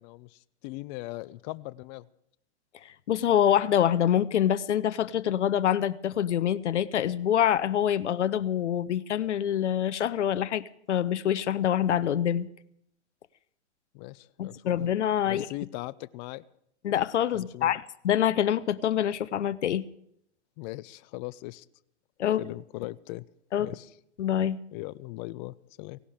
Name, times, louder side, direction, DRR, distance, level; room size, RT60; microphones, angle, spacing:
voice 1, 0.0-2.1 13.9-14.8 15.2-16.4 17.3-17.8 20.6-21.7 22.4-23.2 23.6-23.9 24.7-26.0, left 19 dB, 40° left, 0.5 m, -39 dB
voice 2, 3.1-12.5 14.4-15.5 16.8-19.8 22.2-22.4 23.5-23.7 24.2-24.6, left 10 dB, 85° left, 0.7 m, -25 dB
17.5 x 16.5 x 5.0 m
hypercardioid pair, 115°, 34 cm